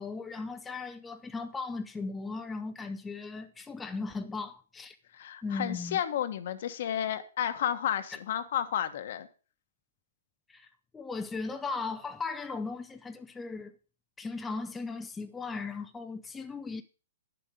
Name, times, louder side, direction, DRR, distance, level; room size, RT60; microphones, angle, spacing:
voice 1, 0.0-5.0 5.4-6.0 10.5-10.7 10.9-13.8 14.2-16.8, left 4 dB, 10° left, 0.6 m, -37 dB
voice 2, 5.1-9.3, left 10 dB, 60° left, 1.2 m, -32 dB
9.8 x 7.1 x 5.2 m
hypercardioid pair, 130°, 0 cm